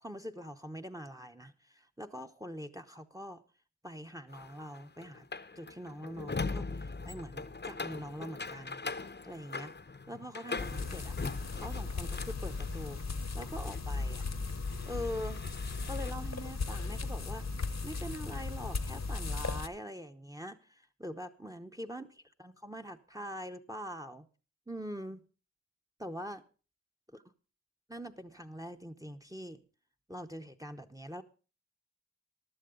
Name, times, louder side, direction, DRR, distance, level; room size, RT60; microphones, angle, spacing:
voice 1, 0.0-3.4 3.8-5.3 5.6-8.8 9.2-9.7 10.1-11.2 11.6-13.0 13.3-14.2 14.8-15.4 15.9-17.5 17.8-24.3 24.7-25.2 26.0-26.4 27.1-27.2 27.9-29.6 30.1-31.2, equal, 10° right, 0.8 m, -43 dB
sound 1, 4.3-13.0 13.4-16.1, left 4 dB, 35° left, 0.7 m, -42 dB
sound 2, 10.6-19.7, left 4 dB, 65° left, 0.9 m, -37 dB
14.5 x 11.5 x 3.8 m
wide cardioid pair, 60°, 29 cm